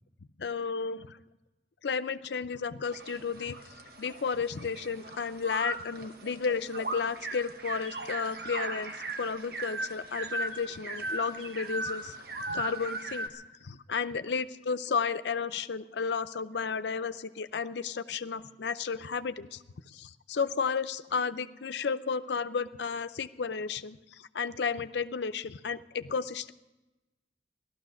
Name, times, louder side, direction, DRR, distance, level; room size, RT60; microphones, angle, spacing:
voice 1, 0.4-1.2 1.8-3.6 4.0-12.2 12.5-26.5, left 5 dB, 70° left, 12 dB, 0.5 m, -33 dB
sound 1, 2.9-13.3, right 2 dB, 55° right, 1.2 m, -38 dB
15.5 x 12.5 x 6.3 m, 1.1 s
head